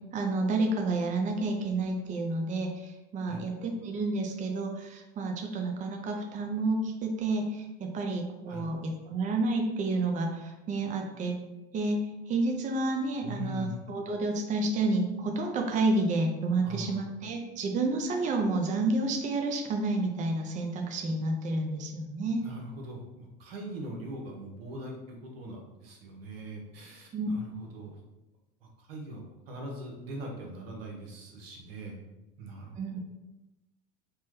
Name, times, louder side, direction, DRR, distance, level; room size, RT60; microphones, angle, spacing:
voice 1, 0.1-11.4 11.7-22.5 27.1-27.3 32.8-33.0, right 2 dB, 25° right, 3 dB, 0.4 m, -30 dB
voice 2, 13.2-13.8 16.6-17.0 22.4-28.0 28.6-32.0 32.4-33.0, right 1 dB, 85° right, 0 dB, 0.8 m, -41 dB
3.3 x 2.1 x 3.1 m, 0.99 s
supercardioid pair, 95°, 29 cm